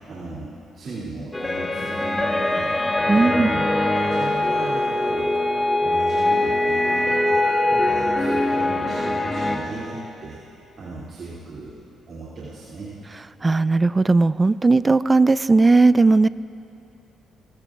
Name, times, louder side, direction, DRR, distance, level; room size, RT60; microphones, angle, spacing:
voice 1, 0.1-2.7 3.1-5.4 5.8-7.4 7.7-11.7 12.1-13.0, right 2 dB, 55° right, -8 dB, 2.7 m, -37 dB
sound 1, 1.3-9.6, left 1 dB, 20° left, 1.4 m, -22 dB
voice 2, 3.1-3.5 13.4-16.3, right 3 dB, 25° right, 17 dB, 0.3 m, -17 dB
29.5 x 16.0 x 2.5 m, 2.9 s
cardioid pair, 90°, 0 cm